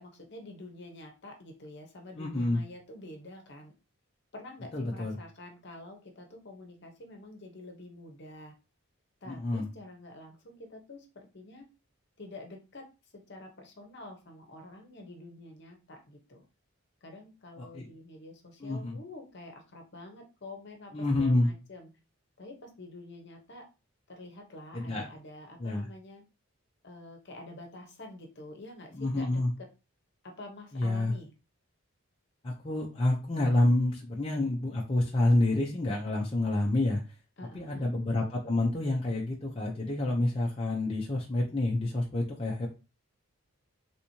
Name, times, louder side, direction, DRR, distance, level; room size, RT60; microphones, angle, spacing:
voice 1, 0.0-3.7 4.3-8.5 9.2-11.7 12.2-12.9 13.3-16.4 17.0-21.9 22.4-23.7 24.1-26.2 26.8-29.4 30.2-31.3 37.4-37.9, left 2 dB, 50° left, 2 dB, 0.8 m, -47 dB
voice 2, 2.2-2.6 4.7-5.2 9.3-9.7 17.6-17.9 18.6-19.0 20.9-21.5 24.7-25.1 25.6-25.9 28.9-29.5 30.7-31.1 32.4-37.0 37.5-42.7, left 2 dB, 25° left, -3 dB, 0.5 m, -28 dB
3.4 x 3.0 x 2.7 m, 0.30 s
head